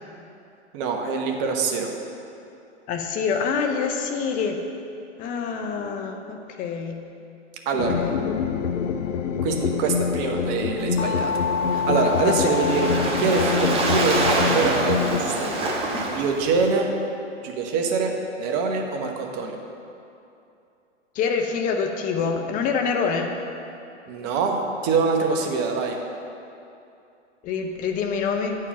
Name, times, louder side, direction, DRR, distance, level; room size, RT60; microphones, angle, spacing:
voice 1, 0.7-1.9 7.6-8.0 9.4-11.3 11.7-15.5 16.0-16.9 17.4-19.6 24.1-26.0, right 4 dB, 35° right, 2 dB, 1.1 m, -24 dB
voice 2, 2.9-4.6 5.2-7.0 7.7-8.2 12.2-12.8 21.1-23.3 27.4-28.6, left 5 dB, 25° left, 4 dB, 0.6 m, -26 dB
sound 1, 7.8-15.2, left 7 dB, 85° left, 0.5 m, -25 dB
Waves surf, 11.0-16.7, right 2 dB, 15° right, 1.0 m, -26 dB
8.7 x 4.8 x 5.9 m, 2.7 s
hypercardioid pair, 120°, 36 cm